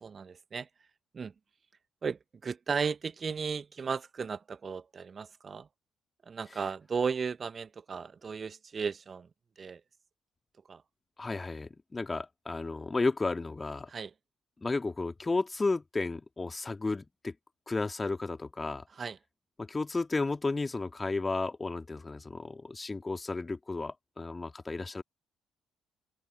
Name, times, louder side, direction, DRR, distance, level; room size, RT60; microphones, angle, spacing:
voice 1, 0.0-0.7 1.1-1.3 2.0-5.7 6.3-9.3 9.6-9.8 10.7-10.8 13.9-14.1 19.0-19.2, right 5 dB, 35° right, 1.1 m, -35 dB
voice 2, 11.2-13.9 14.6-17.3 17.7-18.8 19.6-25.0, left 3 dB, 20° left, 2.6 m, -33 dB
open air
figure-of-eight pair, 45°, 0 cm